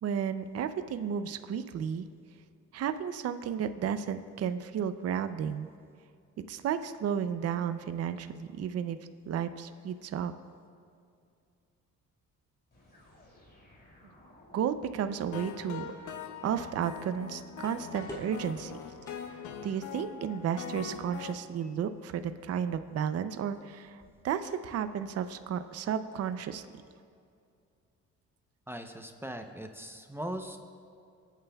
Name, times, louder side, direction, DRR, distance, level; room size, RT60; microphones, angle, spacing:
voice 1, 0.0-2.0 2.7-5.7 6.5-9.0 9.3-10.3 14.5-16.1 16.4-18.8 19.2-26.6, right 8 dB, 55° right, 10 dB, 0.6 m, -33 dB
sound 1, 12.7-16.6, left 1 dB, 35° left, 3.3 m, -58 dB
sound 2, 15.0-25.9, left 1 dB, 10° left, 2.4 m, -55 dB
sound 3, 15.3-21.3, left 7 dB, 75° left, 0.8 m, -42 dB
voice 2, 28.7-30.6, right 1 dB, 10° right, 5 dB, 0.7 m, -39 dB
26.5 x 9.0 x 2.3 m, 2.4 s
cardioid pair, 90°, 30 cm